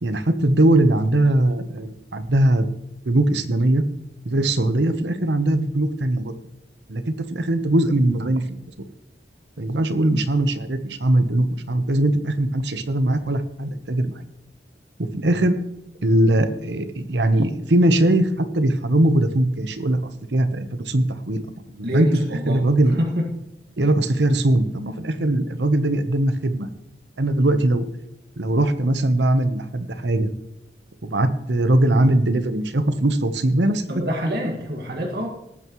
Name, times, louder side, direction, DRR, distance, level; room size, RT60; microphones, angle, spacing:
voice 1, 0.0-2.7 3.0-3.8 4.2-6.3 6.9-8.4 9.6-14.1 15.0-15.6 16.0-20.0 20.3-21.4 21.7-22.1 22.5-23.0 23.8-26.7 27.2-27.9 28.4-30.3 31.0-33.9, right 1 dB, 80° right, 10 dB, 1.0 m, -20 dB
voice 2, 21.8-23.3 33.9-35.3, equal, 60° right, 1 dB, 2.0 m, -27 dB
18.5 x 9.1 x 3.1 m, 0.85 s
head